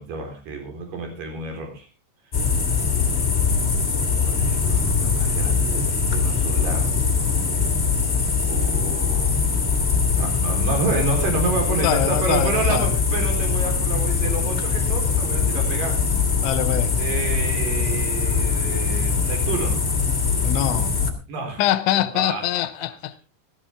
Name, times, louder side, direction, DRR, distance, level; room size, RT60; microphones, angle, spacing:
voice 1, 0.0-1.9 4.2-6.9 8.4-9.4 10.1-16.0 16.9-19.8 21.3-21.6 21.9-22.4, right 4 dB, 50° right, 5.3 m, -29 dB
sound 1, 2.3-21.1, left 5 dB, 60° left, 0.6 m, -22 dB
voice 2, 11.7-12.9 16.4-16.9 20.4-20.9 21.6-23.2, left 13 dB, 85° left, 3.2 m, -24 dB
16.5 x 13.5 x 3.5 m
omnidirectional pair, 5.2 m